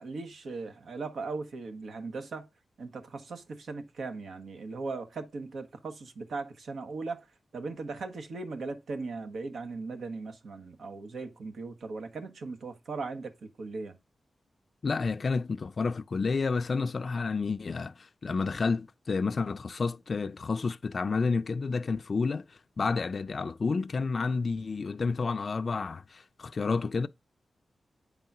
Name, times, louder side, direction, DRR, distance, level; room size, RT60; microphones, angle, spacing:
voice 1, 0.0-2.5 2.8-7.3 7.5-14.0, right 3 dB, 80° right, 1.1 m, -38 dB
voice 2, 14.8-27.1, left 4 dB, 55° left, 0.4 m, -30 dB
8.4 x 3.8 x 5.9 m
cardioid pair, 70°, 0 cm